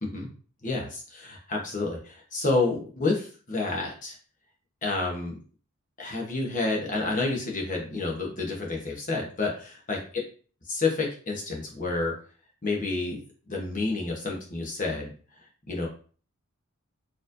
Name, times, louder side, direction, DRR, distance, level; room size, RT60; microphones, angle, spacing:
voice 1, 0.6-4.1 4.8-5.4 6.0-10.0 10.7-12.1 12.6-15.1 15.7-15.9, left 3 dB, 35° left, 0 dB, 1.1 m, -29 dB
4.4 x 3.2 x 2.6 m, 0.40 s
head